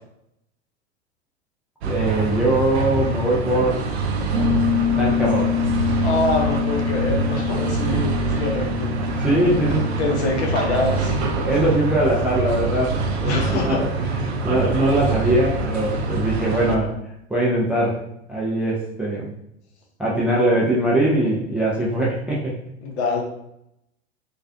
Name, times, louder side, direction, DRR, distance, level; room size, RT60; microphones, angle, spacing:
voice 1, 1.8-3.8 5.0-5.5 9.2-9.9 11.4-16.9 17.3-18.0 18.3-19.3 20.0-22.6, right 1 dB, 5° right, -6 dB, 0.3 m, -21 dB
sound 1, 1.8-16.8, right 3 dB, 65° right, 0.5 m, -25 dB
Piano, 4.3-12.8, left 9 dB, 25° right, 1.0 m, -27 dB
voice 2, 6.0-8.9 10.0-11.2 13.2-13.8 22.8-23.2, left 2 dB, 70° left, 0 dB, 0.7 m, -24 dB
2.4 x 2.3 x 2.2 m, 0.79 s
figure-of-eight pair, 85°, 35 cm